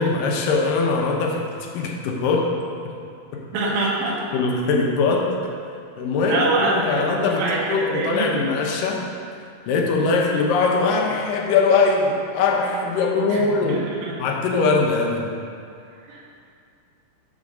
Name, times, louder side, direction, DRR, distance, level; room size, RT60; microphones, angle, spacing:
voice 1, 0.0-1.4 1.7-2.5 2.9-3.0 3.3-3.4 4.3-5.3 6.0-7.4 7.7-9.0 9.7-13.8 14.2-15.3, left 4 dB, 75° left, 0 dB, 2.4 m, -21 dB
voice 2, 3.5-4.2 6.2-8.4 13.3-14.4 16.1-16.2, right 2 dB, 80° right, -5 dB, 3.0 m, -25 dB
7.2 x 4.4 x 6.4 m, 2.4 s
omnidirectional pair, 4.1 m